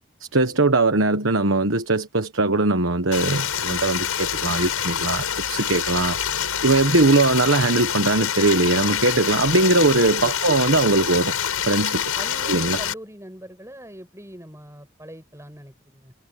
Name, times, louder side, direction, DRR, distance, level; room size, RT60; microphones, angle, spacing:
voice 1, 0.2-6.2 6.6-11.3 11.6-12.0 12.5-12.8, right 2 dB, 60° right, 1.3 m, -20 dB
Stream, 3.1-12.9, left 8 dB, 90° left, 7.0 m, -26 dB
voice 2, 12.2-16.1, right 1 dB, 15° right, 7.0 m, -42 dB
head